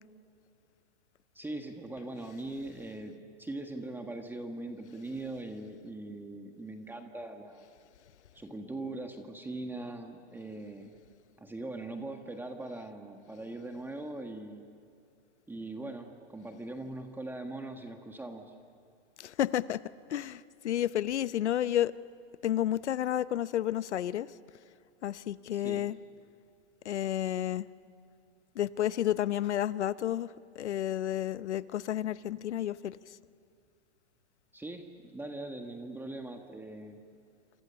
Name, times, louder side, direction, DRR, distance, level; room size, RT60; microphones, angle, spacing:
voice 1, 1.3-7.7 8.3-10.9 11.4-14.7 15.5-18.5 25.5-25.9 34.5-37.0, right 2 dB, 5° right, 4 dB, 1.6 m, -41 dB
voice 2, 19.2-19.8 20.1-21.9 22.4-24.3 25.0-26.0 26.8-27.7 28.6-33.0, left 11 dB, 85° left, 16 dB, 0.9 m, -31 dB
28.0 x 26.5 x 7.1 m, 2.5 s
hypercardioid pair, 135°, 33 cm